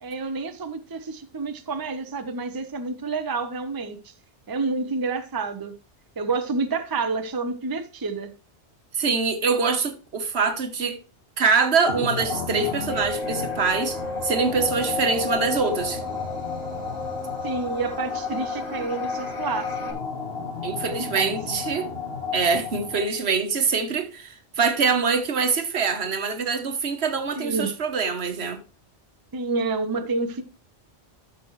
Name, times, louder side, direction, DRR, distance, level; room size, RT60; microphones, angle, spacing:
voice 1, 0.0-4.1 4.5-5.7 6.2-8.3 17.4-20.0 20.9-21.3 27.4-27.7 29.3-30.4, right 3 dB, 25° right, 0.7 m, -29 dB
voice 2, 8.9-11.0 11.4-16.0 20.6-21.9 22.3-28.6, right 5 dB, 70° right, 1.4 m, -24 dB
sound 1, 11.9-23.2, left 5 dB, 60° left, 2.1 m, -32 dB
sound 2, 12.9-19.9, left 1 dB, 35° left, 1.7 m, -35 dB
12.0 x 6.1 x 3.1 m
omnidirectional pair, 1.1 m